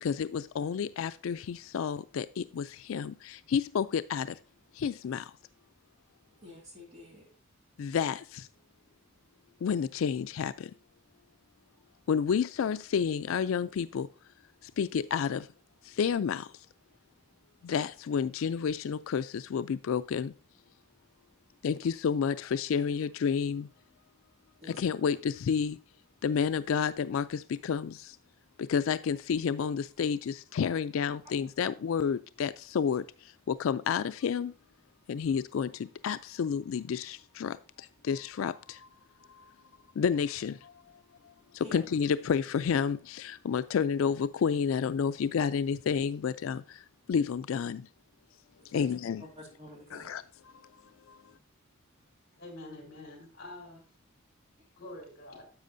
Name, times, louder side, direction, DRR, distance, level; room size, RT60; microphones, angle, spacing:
voice 1, 0.0-4.4 4.7-5.3 7.8-8.5 9.6-10.7 12.1-14.1 14.6-15.5 15.8-16.5 17.6-20.3 21.6-23.7 24.6-25.8 26.2-28.2 28.6-34.5 35.1-38.9 39.3-39.5 40.0-41.0 41.5-46.8 47.1-47.9 48.7-49.2 49.9-50.5 51.1-51.2, left 6 dB, 80° left, 0.3 m, -30 dB
voice 2, 6.4-7.2 24.6-24.7 41.6-41.8 48.7-48.9 49.4-50.1, left 1 dB, 30° right, 2.4 m, -47 dB
voice 3, 52.4-53.8 54.8-55.5, left 1 dB, 45° left, 4.0 m, -46 dB
10.5 x 7.4 x 2.6 m
head